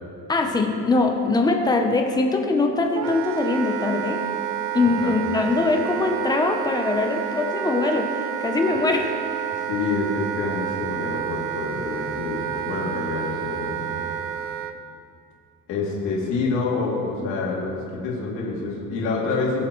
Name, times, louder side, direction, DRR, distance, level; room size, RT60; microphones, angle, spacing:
voice 1, 0.3-4.2 4.7-9.2, left 3 dB, 10° left, 4 dB, 0.7 m, -22 dB
Wind instrument woodwind instrument, 2.9-14.8, right 9 dB, 40° right, 0.5 m, -29 dB
voice 2, 4.8-5.2 9.7-13.9 15.7-19.6, left 3 dB, 65° left, -4 dB, 2.8 m, -27 dB
21.5 x 7.3 x 3.1 m, 2.5 s
cardioid pair, 170°, 33 cm